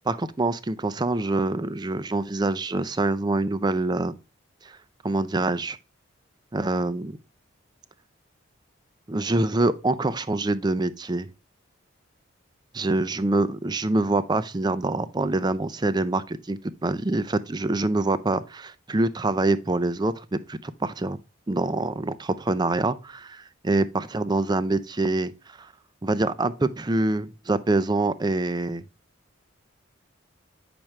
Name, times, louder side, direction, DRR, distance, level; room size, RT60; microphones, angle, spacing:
voice 1, 0.1-4.1 4.6-4.8 5.0-5.8 6.5-7.2 9.1-11.3 12.7-21.2 21.5-25.3 25.6-25.7 26.0-28.8, right 2 dB, 20° right, 0.4 m, -25 dB
8.8 x 6.0 x 3.2 m
head